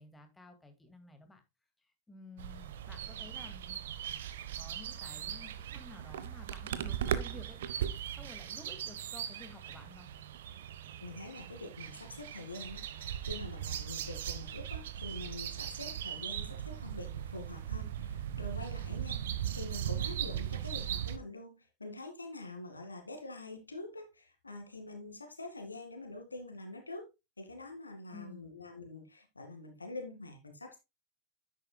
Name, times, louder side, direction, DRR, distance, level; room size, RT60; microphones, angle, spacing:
voice 1, 0.0-1.4 2.1-3.8 4.6-10.1 28.1-28.6, left 2 dB, 10° left, 2.1 m, -53 dB
sound 1, 2.4-21.2, right 10 dB, 60° right, 0.9 m, -39 dB
voice 2, 11.0-27.1 27.4-30.8, left 2 dB, 80° left, 2.1 m, -46 dB
10.5 x 8.5 x 2.3 m
figure-of-eight pair, 90°, 0 cm